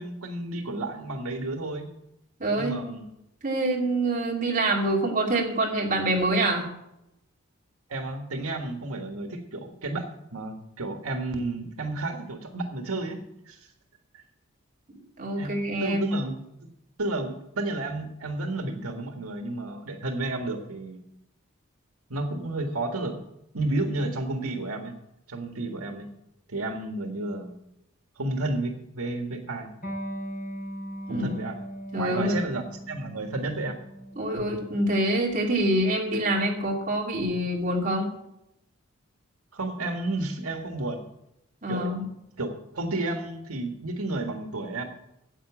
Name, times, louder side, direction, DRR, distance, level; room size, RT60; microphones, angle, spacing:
voice 1, 0.0-1.9 2.5-3.0 7.9-10.1 10.3-13.2 13.5-13.7 14.1-14.2 15.3-15.5 15.8-16.3 17.0-21.0 22.1-23.2 23.5-24.9 25.3-26.1 26.5-27.6 28.1-29.7 31.1-31.6 32.0-33.8 39.5-41.0 41.7-42.1 42.4-44.8, right 2 dB, 85° right, 4 dB, 1.6 m, -31 dB
voice 2, 2.4-2.7 3.4-6.7 15.2-16.2 31.1-31.3 31.9-32.4 34.2-38.1 41.6-42.1, right 1 dB, 35° right, -2 dB, 2.7 m, -26 dB
Electric guitar, 29.8-37.0, equal, 40° left, 6.2 m, -40 dB
10.0 x 7.9 x 8.5 m, 0.84 s
head